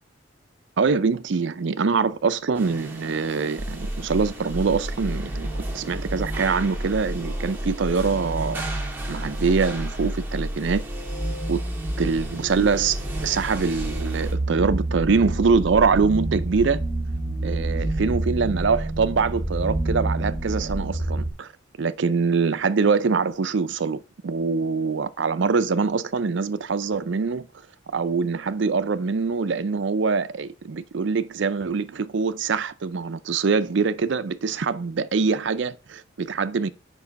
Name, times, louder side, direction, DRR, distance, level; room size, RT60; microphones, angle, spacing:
voice 1, 0.8-5.5 5.7-8.6 9.1-10.8 11.5-11.6 12.0-16.8 17.4-21.5 21.8-27.5 27.9-36.7, right 5 dB, 65° right, 0.5 m, -24 dB
sound 1, 2.5-14.3, right 2 dB, 10° right, 1.7 m, -39 dB
sound 2, 3.6-21.3, right 1 dB, 30° right, 1.9 m, -29 dB
5.3 x 4.9 x 5.1 m
head